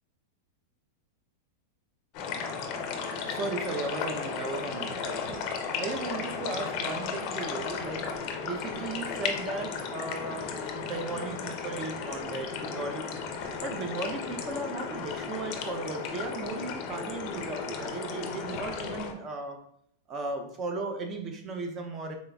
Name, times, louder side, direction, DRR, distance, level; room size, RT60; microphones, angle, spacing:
sound 1, 2.1-19.1, left 5 dB, 35° left, 0.5 m, -35 dB
voice 1, 3.2-5.4 5.8-8.1 8.4-13.2 13.6-19.6 20.1-22.2, right 3 dB, 20° right, 4 dB, 0.5 m, -36 dB
3.9 x 3.8 x 2.3 m, 0.68 s
supercardioid pair, 170°, 0 cm